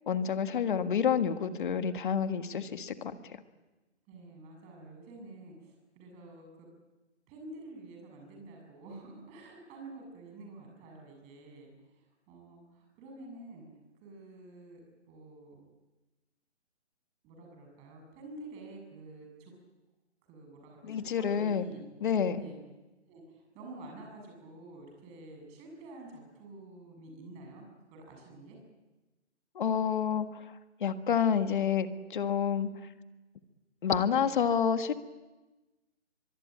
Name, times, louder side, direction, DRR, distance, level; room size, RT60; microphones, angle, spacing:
voice 1, 0.1-3.2 20.8-21.7 22.0-22.4 29.6-30.3 30.8-32.7 33.8-34.9, left 7 dB, 45° left, 9 dB, 1.8 m, -28 dB
voice 2, 4.1-6.7 7.3-13.7 14.0-14.8 15.1-15.6 17.2-19.5 20.3-21.8 22.2-22.6 23.1-27.6 27.9-28.6, right 2 dB, 20° right, 2 dB, 7.1 m, -49 dB
24.0 x 23.0 x 8.9 m, 1.1 s
hypercardioid pair, 155°, 35 cm